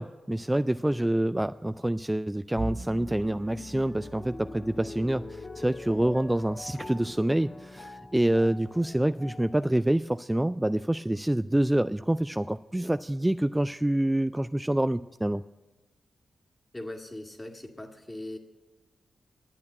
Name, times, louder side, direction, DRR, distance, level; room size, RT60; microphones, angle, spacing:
voice 1, 0.0-15.4, right 1 dB, 15° right, 12 dB, 0.3 m, -27 dB
sound 1, 1.6-2.0 2.5-9.7, left 3 dB, 40° left, 1.3 m, -44 dB
Bowed string instrument, 2.6-9.0, right 2 dB, 50° right, 1.9 m, -44 dB
voice 2, 16.7-18.4, left 1 dB, 20° left, 3 dB, 2.1 m, -40 dB
11.0 x 8.6 x 8.5 m, 1.1 s
supercardioid pair, 45°, 0 cm